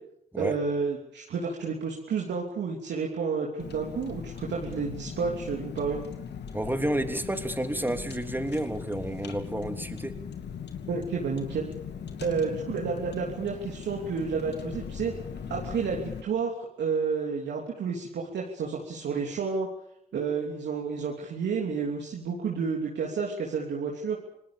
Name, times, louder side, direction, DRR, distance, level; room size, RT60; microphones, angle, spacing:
voice 1, 0.4-6.1 10.9-11.7 12.2-15.1 15.5-19.7 20.1-24.2, right 5 dB, 65° right, -1 dB, 3.2 m, -30 dB
Car, 3.6-16.2, left 7 dB, 65° left, 2.7 m, -39 dB
voice 2, 6.5-10.1, right 1 dB, 10° right, 7 dB, 3.2 m, -30 dB
27.5 x 19.0 x 7.1 m, 0.78 s
hypercardioid pair, 40°, 19 cm